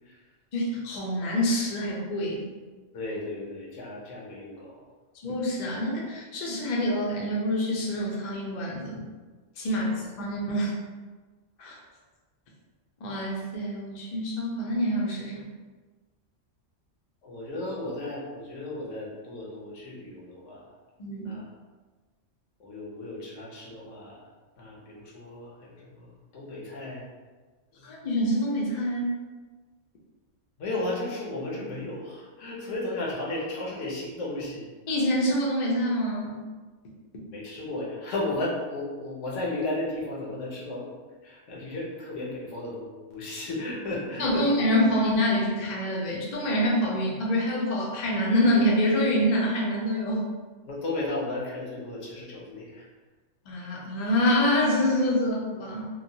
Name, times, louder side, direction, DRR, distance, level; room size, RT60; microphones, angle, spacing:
voice 1, 0.5-2.4 5.2-9.0 9.6-10.7 11.6-11.8 13.0-15.5 21.0-21.3 27.8-29.2 34.9-36.5 44.2-50.3 53.5-55.9, equal, 50° left, -3 dB, 0.6 m, -26 dB
voice 2, 2.9-4.8 9.6-9.8 17.2-20.6 21.2-21.5 22.6-24.2 24.6-27.0 27.7-27.9 30.6-34.7 37.3-40.8 41.2-44.4 50.6-52.8, left 2 dB, 80° left, -3 dB, 1.1 m, -34 dB
3.0 x 2.1 x 2.6 m, 1.3 s
omnidirectional pair, 1.3 m